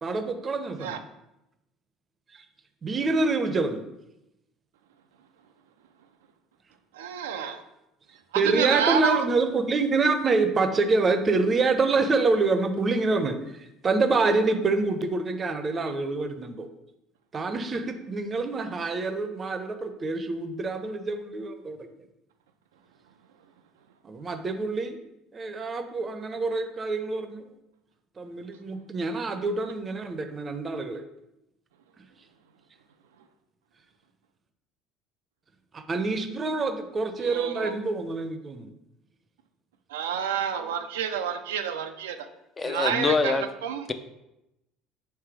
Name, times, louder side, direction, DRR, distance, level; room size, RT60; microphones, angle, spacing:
voice 1, 0.0-1.0 2.3-2.4 2.8-3.8 8.3-16.7 17.3-21.9 24.0-25.0 25.3-27.4 28.2-31.0 35.7-38.7, right 3 dB, 35° right, 7 dB, 0.6 m, -26 dB
voice 2, 6.9-7.6 8.3-9.3 37.2-37.7 39.9-42.3 42.6-43.9, right 8 dB, 80° right, 8 dB, 0.3 m, -29 dB
voice 3, 42.6-43.5, left 4 dB, 30° left, 9 dB, 0.4 m, -24 dB
3.3 x 3.3 x 4.5 m, 0.89 s
hypercardioid pair, 65°, 0 cm